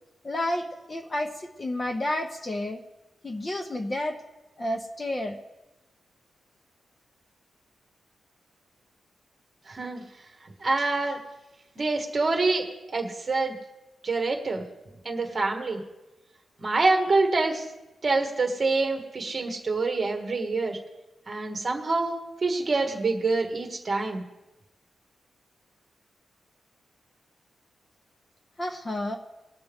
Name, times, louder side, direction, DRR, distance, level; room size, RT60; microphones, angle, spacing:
voice 1, 0.2-2.8 3.2-4.2 4.6-5.4 28.6-29.2, left 1 dB, 20° left, 4 dB, 0.7 m, -30 dB
voice 2, 9.7-10.0 10.6-11.2 11.8-12.6 12.9-13.5 14.0-14.6 15.0-15.8 16.6-17.6 18.0-20.8 21.3-24.2, right 3 dB, 30° right, 2 dB, 1.4 m, -26 dB
20.0 x 6.8 x 3.5 m, 1.0 s
wide cardioid pair, 170°, 0 cm